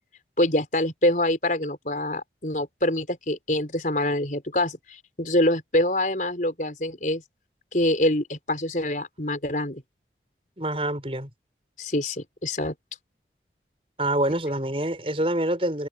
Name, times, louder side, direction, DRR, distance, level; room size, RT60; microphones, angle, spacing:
voice 1, 0.4-7.2 7.7-9.8 11.8-12.7, left 1 dB, 45° left, 4.8 m, -25 dB
voice 2, 10.6-11.3 14.0-15.9, right 1 dB, 30° right, 5.6 m, -26 dB
open air
head